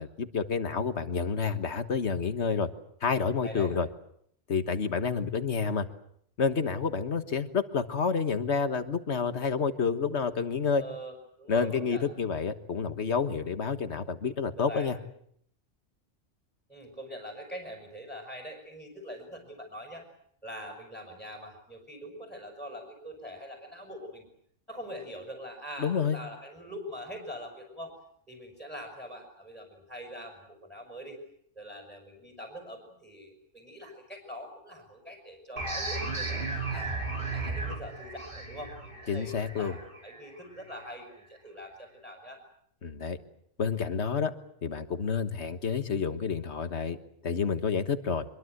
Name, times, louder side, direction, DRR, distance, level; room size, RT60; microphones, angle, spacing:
voice 1, 0.0-2.7 3.0-3.9 4.5-5.9 6.4-10.8 11.5-15.0 25.8-26.2 39.1-39.7 42.8-43.2 43.6-44.3 44.6-47.0 47.2-48.2, left 5 dB, 65° left, 10 dB, 1.7 m, -29 dB
voice 2, 10.7-12.1 14.6-15.0 16.7-20.1 20.4-24.3 24.7-28.0 28.3-31.2 31.5-36.9 37.3-42.4, equal, ahead, 2 dB, 5.6 m, -43 dB
sound 1, 35.6-40.9, right 3 dB, 45° right, 5.9 m, -35 dB
25.0 x 23.0 x 7.9 m, 0.68 s
omnidirectional pair, 1.3 m